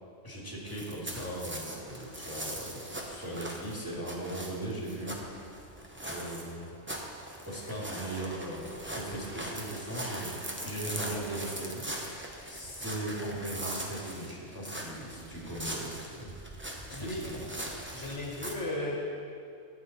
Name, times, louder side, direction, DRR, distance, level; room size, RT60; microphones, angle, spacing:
voice 1, 0.2-5.4 6.1-6.7 7.4-10.4 10.6-16.3 16.9-17.5, right 1 dB, 15° left, -4 dB, 2.3 m, -39 dB
sound 1, 0.7-18.5, right 1 dB, 10° right, 0.8 m, -41 dB
voice 2, 16.9-17.4 17.9-19.1, left 2 dB, 65° left, -3 dB, 1.8 m, -35 dB
13.0 x 8.4 x 4.2 m, 2.5 s
omnidirectional pair, 1.3 m